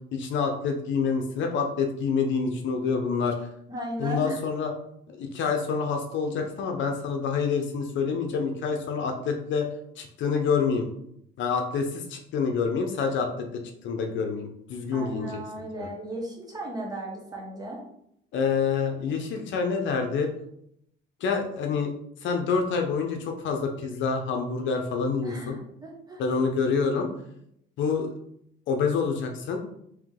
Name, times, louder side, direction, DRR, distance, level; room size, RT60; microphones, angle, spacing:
voice 1, 0.1-3.4 4.0-4.7 5.1-9.7 10.0-10.9 11.4-15.9 18.3-20.3 21.2-21.9 22.2-25.6 26.2-27.1 27.8-28.1 28.7-29.6, left 5 dB, 65° left, 4 dB, 0.7 m, -27 dB
voice 2, 3.7-4.4 14.9-17.8 25.2-26.2, right 1 dB, 20° right, -2 dB, 0.9 m, -36 dB
3.6 x 2.9 x 3.6 m, 0.74 s
cardioid pair, 140°, 21 cm